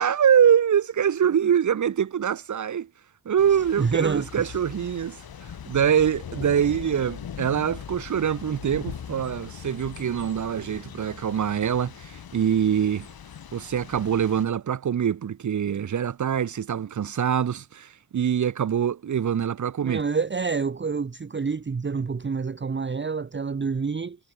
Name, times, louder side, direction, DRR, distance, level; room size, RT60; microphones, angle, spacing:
voice 1, 0.0-2.9 3.3-5.2 5.7-13.1 13.5-20.0, right 8 dB, 50° right, 0.7 m, -24 dB
Thunder / Rain, 3.4-14.4, left 8 dB, 70° left, 1.6 m, -40 dB
voice 2, 3.8-4.5 19.8-24.2, right 5 dB, 30° right, 1.0 m, -27 dB
wide cardioid pair, 100°, 38 cm